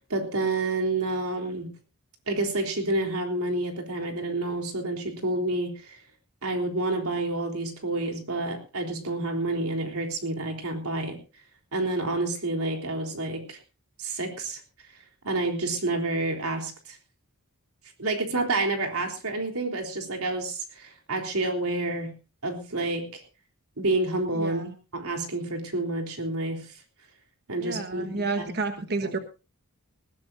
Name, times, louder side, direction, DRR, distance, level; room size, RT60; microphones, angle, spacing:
voice 1, 0.1-1.7 2.3-6.0 6.4-11.2 11.7-13.6 14.0-14.6 15.2-17.0 18.0-22.1 22.4-23.2 23.8-24.6 24.9-26.7 27.5-28.5 29.0-29.1, right 2 dB, 75° right, 3 dB, 3.6 m, -29 dB
voice 2, 24.3-24.7 27.6-29.2, right 3 dB, 45° right, 7 dB, 1.3 m, -30 dB
20.0 x 16.5 x 2.6 m, 0.31 s
head